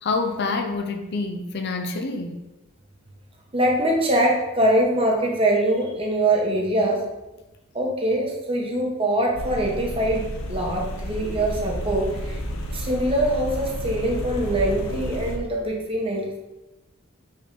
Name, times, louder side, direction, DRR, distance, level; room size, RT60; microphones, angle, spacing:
voice 1, 0.0-2.4, left 3 dB, 50° left, 5 dB, 0.5 m, -27 dB
voice 2, 3.5-7.0 7.7-12.4 12.7-16.4, right 1 dB, 25° right, -1 dB, 1.0 m, -23 dB
sound 1, 9.3-15.4, equal, 80° left, 0.8 m, -31 dB
5.3 x 3.5 x 5.2 m, 1.0 s
head